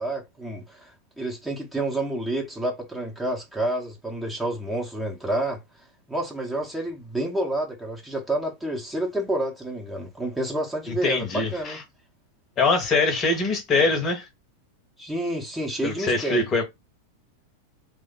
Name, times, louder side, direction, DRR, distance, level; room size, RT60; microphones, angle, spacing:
voice 1, 0.0-5.6 6.1-11.8 15.0-16.4, right 1 dB, 5° right, 0.9 m, -29 dB
voice 2, 10.9-11.8 12.6-14.3 15.8-16.6, left 3 dB, 30° left, 0.9 m, -23 dB
3.2 x 2.1 x 3.9 m
figure-of-eight pair, 90°, 0 cm